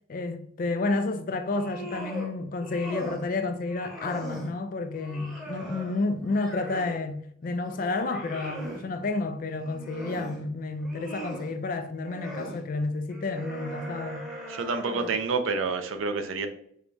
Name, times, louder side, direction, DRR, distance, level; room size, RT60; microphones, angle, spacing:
voice 1, 0.1-14.3, left 3 dB, 45° left, 0.3 m, -30 dB
sound 1, 1.4-2.3 2.6-3.3 3.6-4.5 5.0-7.0 7.5-8.9 9.5-10.4 10.8-11.5 12.0-12.6 13.1-15.3, right 1 dB, ahead, 0.9 m, -40 dB
voice 2, 14.5-16.5, right 4 dB, 85° right, 0.4 m, -28 dB
4.7 x 2.3 x 2.6 m
head